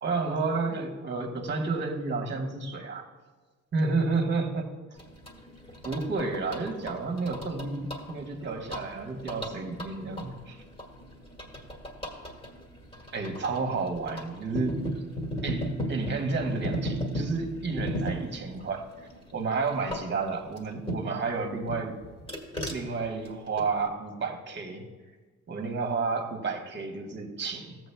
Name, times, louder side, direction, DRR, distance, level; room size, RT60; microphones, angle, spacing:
voice 1, 0.0-3.1 3.7-4.7 5.8-10.6 13.1-14.9 15.4-18.9 19.3-22.0 22.7-24.8 25.5-27.8, right 4 dB, 35° right, 3 dB, 1.5 m, -31 dB
sound 1, 5.0-21.3 21.7-23.9, equal, 20° left, 1.9 m, -37 dB
14.0 x 7.8 x 2.3 m, 1.3 s
cardioid pair, 90°, 30 cm